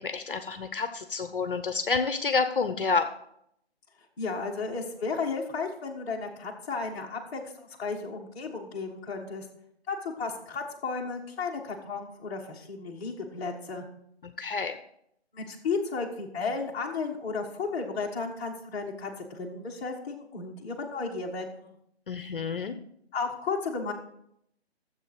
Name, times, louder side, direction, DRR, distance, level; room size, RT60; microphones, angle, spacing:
voice 1, 0.0-3.1 14.2-14.8 22.1-22.7, left 4 dB, 55° left, 9 dB, 0.9 m, -29 dB
voice 2, 4.2-9.5 9.9-13.8 15.3-21.7 23.1-23.9, left 4 dB, 15° left, -3 dB, 1.5 m, -34 dB
14.0 x 7.6 x 4.9 m, 0.75 s
figure-of-eight pair, 150°, 33 cm